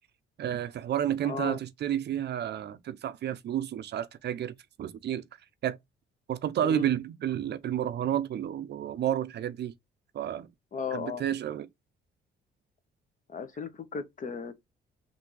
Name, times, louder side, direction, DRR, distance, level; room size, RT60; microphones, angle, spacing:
voice 1, 0.4-5.2 5.6-5.8 6.3-9.7 10.1-10.5 10.9-11.7, right 10 dB, 60° right, 0.5 m, -31 dB
voice 2, 1.2-1.6 6.6-6.9 10.7-11.2 13.3-14.5, left 5 dB, 40° left, 0.9 m, -35 dB
3.4 x 2.6 x 4.6 m
cardioid pair, 90°, 20 cm